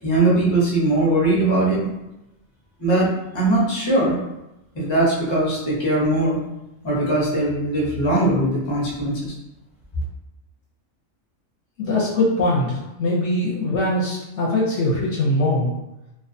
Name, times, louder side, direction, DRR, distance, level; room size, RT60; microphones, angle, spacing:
voice 1, 0.0-1.9 2.8-4.2 4.7-6.4 6.8-9.3, right 2 dB, 30° left, -6 dB, 0.6 m, -20 dB
voice 2, 11.8-15.7, left 1 dB, 65° left, -6 dB, 0.8 m, -22 dB
2.3 x 2.2 x 2.6 m, 0.91 s
omnidirectional pair, 1.4 m